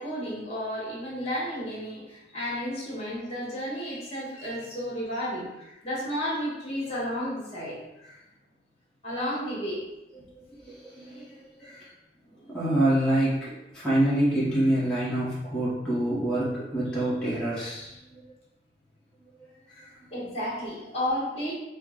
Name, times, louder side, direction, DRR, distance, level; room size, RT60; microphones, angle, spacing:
voice 1, 0.0-5.5 5.8-7.9 9.0-9.8 12.3-12.6 20.1-21.5, equal, 35° left, -5 dB, 1.4 m, -32 dB
voice 2, 10.3-11.8 12.5-18.2 19.7-19.9 20.2-20.3, right 1 dB, 5° left, -11 dB, 1.1 m, -27 dB
4.5 x 2.2 x 3.7 m, 0.94 s
head